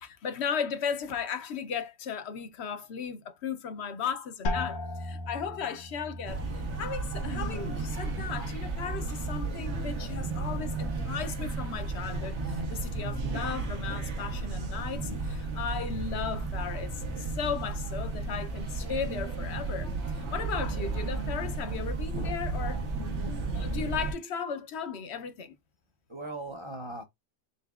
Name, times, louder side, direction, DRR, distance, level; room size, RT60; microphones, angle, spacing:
voice 1, 0.0-22.9 23.5-25.5, left 6 dB, 70° left, 0.9 m, -36 dB
sound 1, 4.4-10.1 10.4-11.1 11.6-12.1, left 2 dB, 85° left, 1.2 m, -39 dB
sound 2, 6.3-24.1, right 3 dB, 70° right, 1.3 m, -33 dB
voice 2, 23.1-23.5 26.1-27.0, right 1 dB, 35° right, 0.5 m, -38 dB
4.0 x 3.8 x 2.3 m
omnidirectional pair, 1.2 m